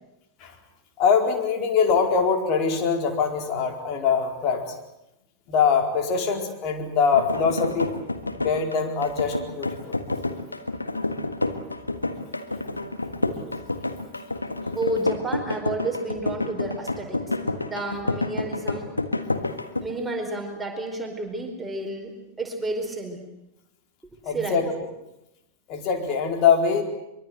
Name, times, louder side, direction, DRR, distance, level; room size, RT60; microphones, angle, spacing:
voice 1, 1.0-4.8 5.5-7.9 8.4-9.9 24.2-24.7 25.7-26.8, left 6 dB, 40° left, 4 dB, 4.5 m, -23 dB
Mridangam-Tishra, 7.1-19.8, left 2 dB, 85° left, 1.6 m, -29 dB
voice 2, 14.7-17.4 17.7-18.9 19.8-23.2 24.0-24.6, right 2 dB, 10° right, 2 dB, 4.7 m, -31 dB
24.0 x 23.0 x 8.0 m, 0.87 s
figure-of-eight pair, 90°, 0 cm